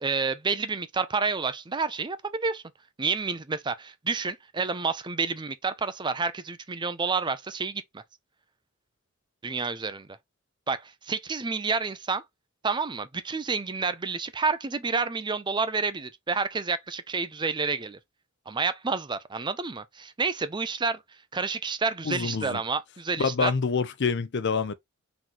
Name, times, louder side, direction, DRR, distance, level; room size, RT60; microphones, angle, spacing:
voice 1, 0.0-2.6 3.0-8.0 9.4-10.1 10.7-12.2 12.6-18.0 18.5-21.0 21.3-23.5, right 4 dB, 20° right, 0.5 m, -29 dB
voice 2, 22.1-22.6 23.2-24.7, left 5 dB, 55° left, 0.6 m, -26 dB
4.0 x 3.1 x 4.0 m
head